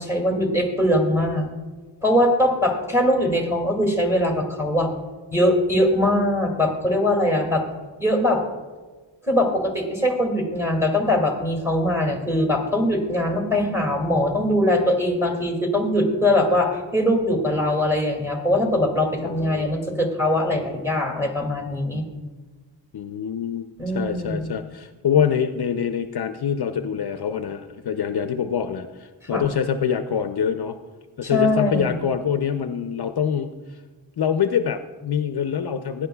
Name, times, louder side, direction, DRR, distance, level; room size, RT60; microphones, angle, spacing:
voice 1, 0.0-1.5 2.0-4.9 5.3-7.6 8.0-8.4 9.3-22.0 23.8-24.5 29.3-29.4 31.2-32.0, left 1 dB, 5° right, 0 dB, 2.1 m, -21 dB
voice 2, 19.2-19.7 22.9-30.8 31.2-33.5 34.2-36.1, left 8 dB, 60° left, 8 dB, 0.6 m, -25 dB
16.5 x 10.0 x 2.3 m, 1.3 s
wide cardioid pair, 100°, 44 cm